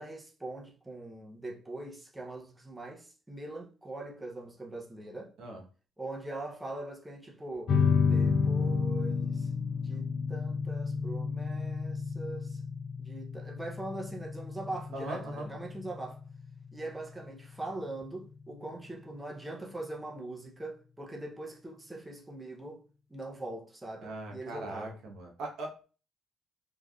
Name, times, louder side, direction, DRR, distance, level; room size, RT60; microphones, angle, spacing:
voice 1, 0.0-5.3 6.0-7.8 8.1-12.6 13.0-16.2 16.7-22.8 23.1-25.0, right 2 dB, 10° right, 0.6 m, -42 dB
sound 1, 7.7-18.7, left 5 dB, 55° left, 0.4 m, -31 dB
voice 2, 14.9-15.5 24.0-25.8, right 2 dB, 80° right, 0.9 m, -40 dB
3.3 x 2.4 x 2.3 m
cardioid pair, 105°, 0 cm